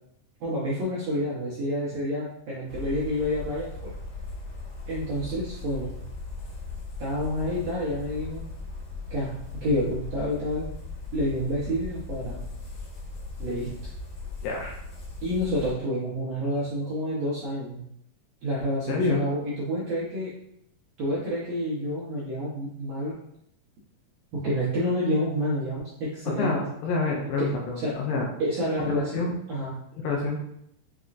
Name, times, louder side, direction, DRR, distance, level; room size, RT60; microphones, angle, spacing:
voice 1, 0.4-3.9 4.9-5.9 7.0-8.4 9.1-10.7 11.1-12.4 13.4-13.7 15.2-17.8 18.4-20.3 21.0-23.2 24.3-26.6 27.4-27.5 27.8-28.0 28.4-29.1 29.5-29.7, equal, 75° right, -7 dB, 1.5 m, -29 dB
sound 1, 2.7-15.7, left 3 dB, 60° left, 2.3 m, -38 dB
voice 2, 14.4-14.8 18.9-19.2 26.4-28.3 28.8-29.3 30.0-30.4, left 3 dB, 80° left, -2 dB, 2.3 m, -27 dB
7.0 x 2.8 x 2.4 m, 0.74 s
omnidirectional pair, 4.2 m